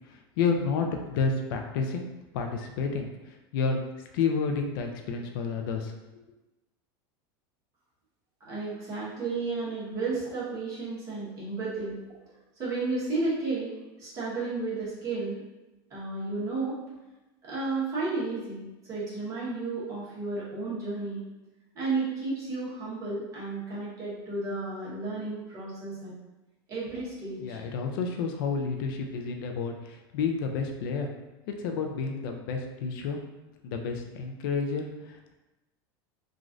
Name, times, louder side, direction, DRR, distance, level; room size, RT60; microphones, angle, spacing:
voice 1, 0.1-2.1 2.3-3.1 3.5-3.8 4.1-5.9 27.4-31.1 31.6-33.2 33.6-35.3, left 5 dB, 70° left, 4 dB, 0.4 m, -30 dB
voice 2, 8.4-12.0 12.6-15.4 15.9-16.8 17.4-21.2 21.7-26.1 26.7-27.6, right 3 dB, 25° right, -8 dB, 1.1 m, -33 dB
3.1 x 2.4 x 2.4 m, 1.0 s
supercardioid pair, 155°, 12 cm